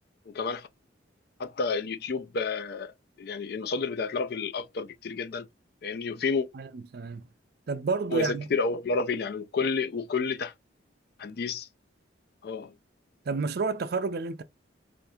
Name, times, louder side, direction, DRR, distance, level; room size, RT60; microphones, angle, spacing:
voice 1, 0.3-0.7 1.4-2.9 3.2-5.5 5.8-6.5 8.1-10.5 11.2-11.7 12.4-12.7, left 4 dB, 55° left, 0.4 m, -30 dB
voice 2, 6.5-7.3 7.7-8.5 13.3-14.4, right 4 dB, 55° right, 0.4 m, -30 dB
3.4 x 2.5 x 2.7 m
head